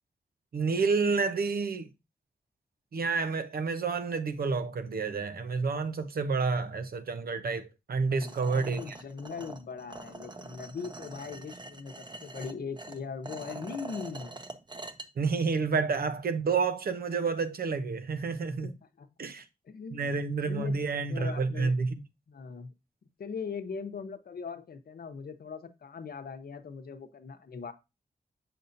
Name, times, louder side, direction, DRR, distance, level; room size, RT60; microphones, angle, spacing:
voice 1, 0.5-1.9 2.9-9.0 15.2-18.7 19.2-19.4 19.9-22.0, right 4 dB, 85° right, 0.8 m, -29 dB
voice 2, 8.0-14.4 18.5-19.1 19.7-20.8 21.1-21.7 22.3-22.7 23.2-27.7, left 5 dB, 85° left, 0.8 m, -40 dB
sound 1, 8.2-15.1, right 2 dB, 30° right, 0.8 m, -44 dB
6.8 x 6.0 x 2.6 m
wide cardioid pair, 95°, 15 cm